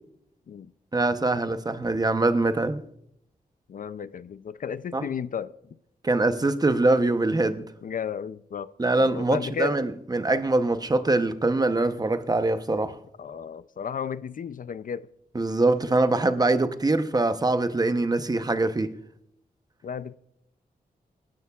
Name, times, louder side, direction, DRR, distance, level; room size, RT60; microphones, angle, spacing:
voice 1, 0.9-2.8 4.9-5.0 6.0-7.7 8.8-13.0 15.3-19.0, right 2 dB, 25° right, 0.8 m, -23 dB
voice 2, 3.7-5.5 7.8-9.8 13.2-15.1 19.8-20.1, left 7 dB, 60° left, 0.4 m, -33 dB
25.5 x 11.0 x 2.4 m
wide cardioid pair, 100°, 16 cm